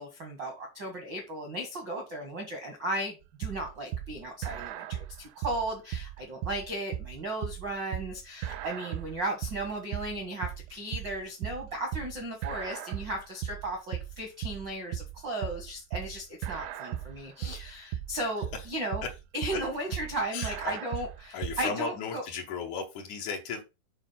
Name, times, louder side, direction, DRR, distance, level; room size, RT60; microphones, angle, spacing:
voice 1, 0.0-3.1 3.4-19.0 19.3-22.2, right 1 dB, 70° right, 1.0 m, -35 dB
sound 1, 3.4-21.7, right 11 dB, 85° right, 3.1 m, -37 dB
voice 2, 20.3-20.8 21.3-23.6, left 6 dB, 85° left, 1.7 m, -35 dB
8.9 x 4.2 x 5.8 m
omnidirectional pair, 5.2 m